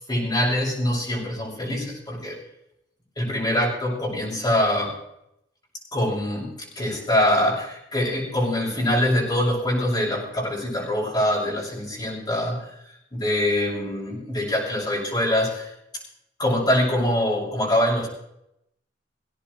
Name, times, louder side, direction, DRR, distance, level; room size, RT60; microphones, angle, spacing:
voice 1, 0.1-2.4 3.2-5.0 5.9-12.7 13.1-15.7 16.4-18.1, left 1 dB, 25° left, -6 dB, 6.5 m, -24 dB
18.5 x 17.0 x 3.3 m, 0.78 s
head